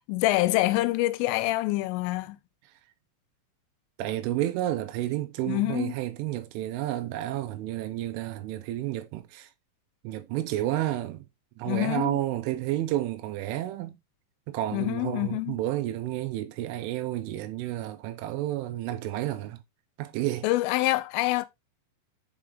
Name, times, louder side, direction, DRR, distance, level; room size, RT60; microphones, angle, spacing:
voice 1, 0.1-2.4 5.5-5.9 11.7-12.1 14.7-15.6 20.4-21.5, left 18 dB, 85° left, 3.1 m, -26 dB
voice 2, 4.0-9.5 10.0-11.3 11.6-14.0 14.5-19.6 20.0-20.5, right 14 dB, 80° right, 3.2 m, -31 dB
7.3 x 5.0 x 3.4 m
omnidirectional pair, 5.7 m